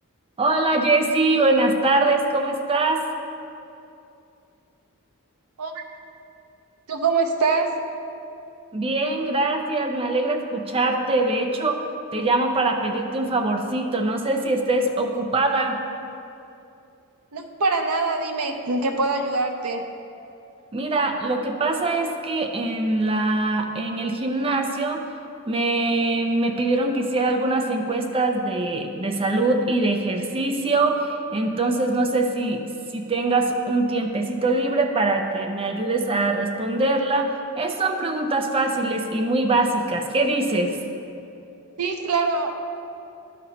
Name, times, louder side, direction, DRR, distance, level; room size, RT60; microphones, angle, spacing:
voice 1, 0.4-3.1 8.7-11.9 12.1-15.8 20.7-25.1 25.5-32.6 32.9-37.3 37.6-40.8, right 2 dB, 25° right, 4 dB, 0.5 m, -23 dB
voice 2, 6.9-7.7 17.3-19.8 41.8-42.5, right 3 dB, 80° right, 4 dB, 0.6 m, -23 dB
11.0 x 4.2 x 4.2 m, 2.7 s
head